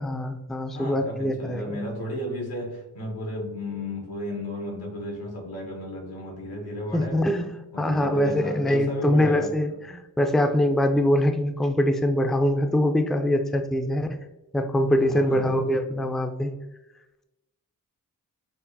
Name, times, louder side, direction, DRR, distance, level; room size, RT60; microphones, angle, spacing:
voice 1, 0.0-1.8 6.9-14.1 14.5-16.5, left 1 dB, ahead, 6 dB, 0.4 m, -23 dB
voice 2, 0.7-7.3 7.7-9.5 15.0-15.6, left 1 dB, 90° left, 0 dB, 1.2 m, -33 dB
5.7 x 2.0 x 2.7 m, 0.97 s
cardioid pair, 50°, 37 cm